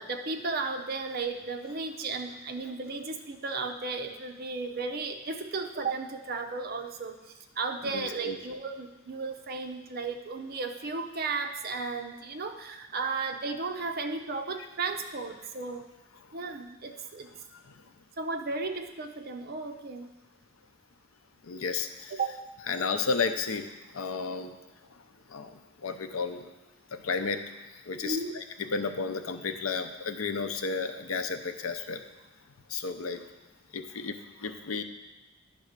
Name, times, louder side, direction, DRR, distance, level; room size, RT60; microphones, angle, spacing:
voice 1, 0.0-7.2 7.6-15.8 16.3-17.3 18.2-20.1 22.1-22.4 28.0-28.3, right 3 dB, 45° right, 5 dB, 0.7 m, -34 dB
voice 2, 7.8-8.4 21.4-22.1 22.7-24.5 25.3-26.5 26.9-27.4 27.9-28.4 28.7-32.0 32.7-33.2 33.7-34.8, left 4 dB, 85° left, 8 dB, 0.6 m, -32 dB
10.0 x 3.6 x 6.5 m, 1.1 s
head